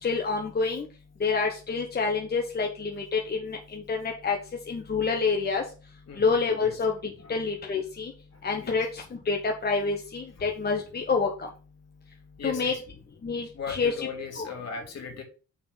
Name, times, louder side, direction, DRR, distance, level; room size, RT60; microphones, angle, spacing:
voice 1, 0.0-0.9 1.2-4.4 4.7-5.6 6.2-6.9 7.3-8.1 8.4-11.5 12.4-12.7 13.2-14.1 14.4-14.5, left 4 dB, 30° left, 1 dB, 1.1 m, -27 dB
voice 2, 8.3-8.8 10.4-10.5 12.4-12.8 13.5-15.2, left 6 dB, 55° left, 1 dB, 2.6 m, -37 dB
6.6 x 3.8 x 5.5 m, 0.37 s
cardioid pair, 90°, 30 cm